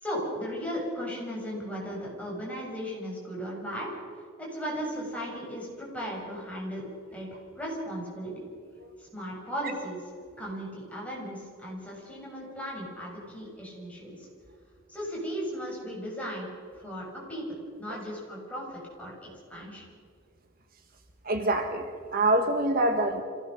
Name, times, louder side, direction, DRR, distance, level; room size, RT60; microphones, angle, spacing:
voice 1, 0.0-3.9 4.4-6.8 7.1-8.4 9.0-10.0 10.4-14.3 14.9-16.5 16.7-17.0 17.3-17.4 17.8-19.1 19.5-19.8, equal, 5° left, -5 dB, 7.7 m, -36 dB
voice 2, 21.2-23.2, right 2 dB, 45° right, 5 dB, 1.5 m, -26 dB
26.0 x 17.5 x 6.7 m, 2.1 s
head